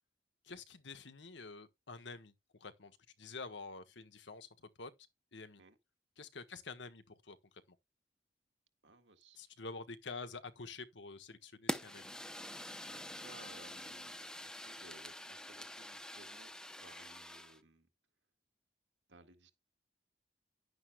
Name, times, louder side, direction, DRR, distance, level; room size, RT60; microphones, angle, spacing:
voice 1, 0.4-4.9 5.3-5.6 6.2-7.4 7.7-7.8 9.3-12.1, left 4 dB, 85° left, 1.5 m, -48 dB
voice 2, 8.8-9.4 12.9-16.5 16.8-17.9 19.1-19.5, right 2 dB, 85° right, 1.8 m, -60 dB
Fire, 11.7-17.6, left 1 dB, 5° left, 0.7 m, -45 dB
11.0 x 9.7 x 2.4 m
head